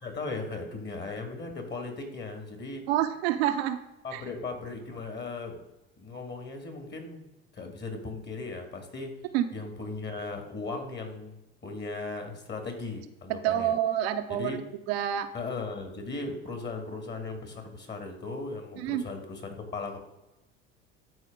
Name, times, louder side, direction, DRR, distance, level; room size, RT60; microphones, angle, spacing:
voice 1, 0.0-2.9 4.0-5.6 6.0-7.2 7.5-9.2 9.5-13.7 14.3-14.6 15.3-20.1, left 3 dB, 35° left, 5 dB, 2.2 m, -37 dB
voice 2, 2.9-3.8 4.1-4.2 9.3-9.4 13.3-14.6 14.9-15.3 18.8-19.0, right 11 dB, 75° right, 7 dB, 0.8 m, -27 dB
12.0 x 4.5 x 3.8 m, 0.97 s
hypercardioid pair, 70°, 31 cm